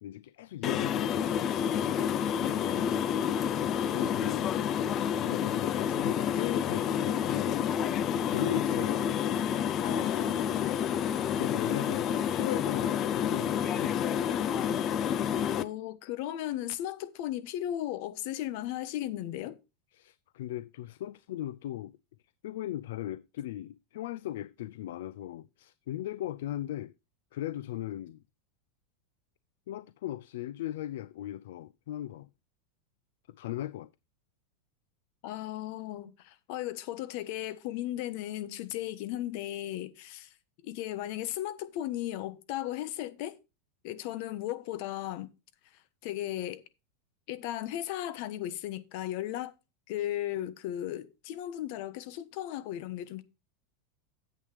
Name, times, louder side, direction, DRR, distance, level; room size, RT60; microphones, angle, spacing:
voice 1, 0.0-2.0 3.9-4.6 5.2-7.7 8.1-9.2 11.4-14.4 19.9-22.0 22.4-26.9 27.3-28.2 29.7-32.3 33.4-33.9, left 13 dB, 75° left, 0.4 m, -38 dB
sound 1, 0.6-15.6, left 9 dB, 30° left, 0.6 m, -29 dB
voice 2, 2.4-2.8 9.8-10.8 15.5-19.6 35.2-40.3 40.6-43.3 43.8-45.3 46.0-46.6 47.3-49.5 49.9-53.2, left 13 dB, 55° left, 1.2 m, -36 dB
10.0 x 8.3 x 3.3 m
supercardioid pair, 140°, 0 cm